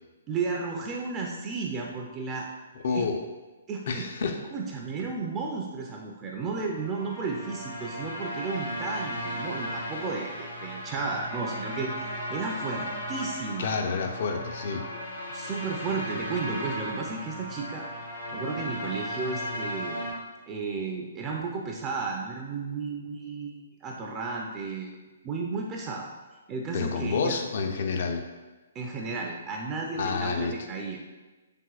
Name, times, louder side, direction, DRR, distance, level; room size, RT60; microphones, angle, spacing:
voice 1, 0.3-2.5 2.9-3.1 3.7-4.1 4.5-11.9 12.3-13.7 15.3-17.8 18.3-20.0 20.5-25.0 25.2-26.1 26.5-27.4 28.7-31.0, right 4 dB, 25° right, -1 dB, 0.4 m, -33 dB
voice 2, 2.8-3.2 3.9-4.4 13.6-14.8 26.7-28.2 30.0-30.5, left 5 dB, 55° left, 4 dB, 0.4 m, -29 dB
sound 1, 6.6-20.1, equal, 75° left, 1.1 m, -36 dB
3.4 x 2.7 x 2.3 m, 1.2 s
figure-of-eight pair, 130°, 0 cm